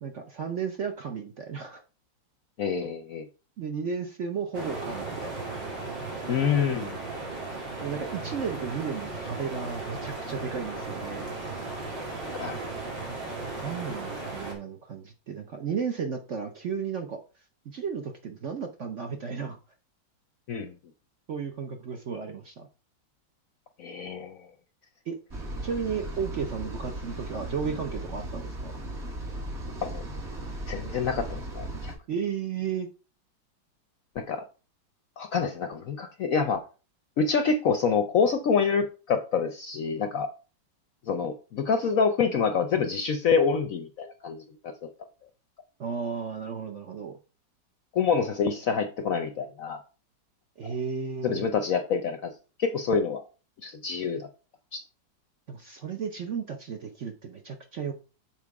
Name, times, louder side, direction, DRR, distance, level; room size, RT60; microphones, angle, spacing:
voice 1, 0.0-1.8 3.6-5.4 7.8-11.3 13.6-17.2 17.6-19.6 21.3-22.7 25.1-25.2 25.6-28.7 32.1-32.9 45.8-47.2 50.6-51.5 55.5-57.9, right 6 dB, 55° right, 0.9 m, -34 dB
voice 2, 2.6-3.3 6.3-7.0 12.3-12.7 20.5-20.7 23.8-24.4 29.8-30.0 30.7-31.9 34.2-34.4 35.2-36.6 37.2-40.3 41.1-44.7 47.9-49.8 51.2-52.3 52.6-53.2 53.6-54.3 54.7-54.8, left 5 dB, 65° left, 0.9 m, -27 dB
sound 1, 4.5-14.5, right 3 dB, 75° right, 2.7 m, -36 dB
sound 2, 25.3-32.0, right 1 dB, 40° right, 1.6 m, -37 dB
7.4 x 4.0 x 4.7 m
omnidirectional pair, 2.0 m